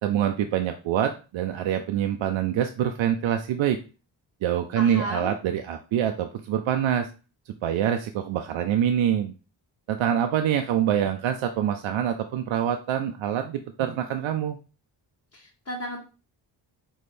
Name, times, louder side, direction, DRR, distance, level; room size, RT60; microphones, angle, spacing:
voice 1, 0.0-3.8 4.4-7.1 7.6-9.3 9.9-14.6, right 9 dB, 75° right, 6 dB, 0.6 m, -25 dB
voice 2, 4.7-5.3 15.3-16.0, equal, 35° left, -3 dB, 1.2 m, -34 dB
4.3 x 3.1 x 3.3 m, 0.34 s
cardioid pair, 55°, 47 cm